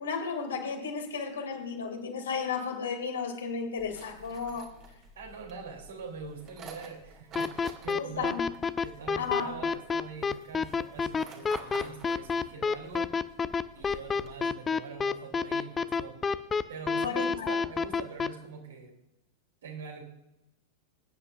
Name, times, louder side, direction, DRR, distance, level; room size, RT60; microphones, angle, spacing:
voice 1, 0.0-4.7 7.9-8.5 9.2-9.5 16.9-17.5, left 5 dB, 65° left, 2.5 m, -34 dB
sound 1, 3.8-14.4, right 4 dB, 35° right, 2.2 m, -50 dB
voice 2, 5.1-8.4 8.8-13.1 13.7-16.2 16.7-19.0 19.6-20.0, right 5 dB, 65° right, 3.0 m, -43 dB
sound 2, 7.4-18.3, left 5 dB, 20° left, 0.5 m, -28 dB
22.0 x 9.9 x 2.5 m
figure-of-eight pair, 90°, 0 cm